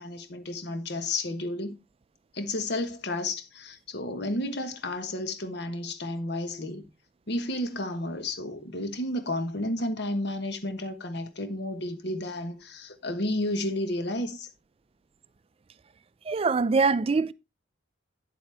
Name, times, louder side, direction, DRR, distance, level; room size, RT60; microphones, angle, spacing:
voice 1, 0.0-1.8 2.3-6.8 7.3-14.5, left 1 dB, 60° left, 1.2 m, -32 dB
voice 2, 16.3-17.3, right 4 dB, 30° right, 0.4 m, -23 dB
9.0 x 7.9 x 3.3 m
head